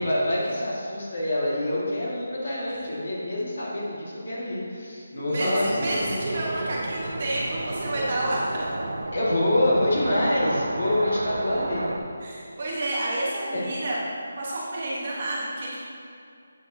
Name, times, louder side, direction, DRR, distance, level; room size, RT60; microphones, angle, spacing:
voice 1, 0.0-6.1 9.1-11.9 13.5-13.7, left 1 dB, 45° left, -5 dB, 1.8 m, -26 dB
voice 2, 5.1-8.6 12.2-14.0 14.4-15.8, right 1 dB, 30° right, -5 dB, 1.1 m, -29 dB
sound 1, 5.6-12.0, right 2 dB, 80° right, 0.7 m, -31 dB
8.3 x 7.3 x 2.8 m, 2.5 s
hypercardioid pair, 180°, 0 cm